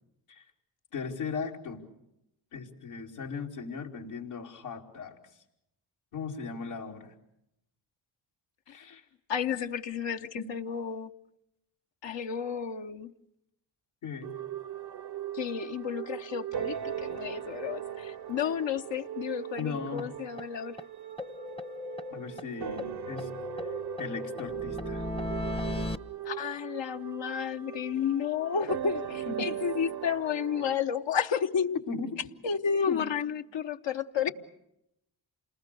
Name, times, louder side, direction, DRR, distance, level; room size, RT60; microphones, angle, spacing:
voice 1, 0.9-1.8 2.5-5.2 6.1-7.1 8.7-9.0 10.3-10.5 14.0-14.4 19.6-20.1 22.1-23.3 23.6-23.7 24.0-25.1 29.4-29.5 31.9-32.1 32.9-33.1, left 5 dB, 80° left, 2.7 m, -37 dB
voice 2, 9.3-11.1 12.0-13.1 15.3-20.8 26.2-31.8 32.4-34.3, left 7 dB, 60° left, 1.0 m, -31 dB
sound 1, 14.2-30.8, right 10 dB, 50° right, 0.9 m, -39 dB
sound 2, 19.6-19.7 20.0-20.1 20.4-20.5 20.8-20.9 21.2-22.5 22.8-26.0, left 2 dB, 10° left, 0.8 m, -36 dB
28.0 x 20.0 x 6.8 m
supercardioid pair, 40°, 50 cm